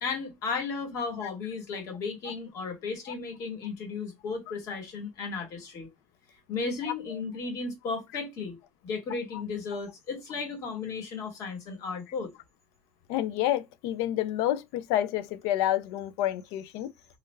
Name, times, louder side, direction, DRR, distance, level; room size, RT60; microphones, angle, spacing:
voice 1, 0.0-5.9 6.5-8.6 8.8-12.3, left 4 dB, 45° left, 1.3 m, -34 dB
voice 2, 13.1-16.9, left 12 dB, 75° left, 0.4 m, -28 dB
3.2 x 2.4 x 3.2 m
cardioid pair, 165°, 7 cm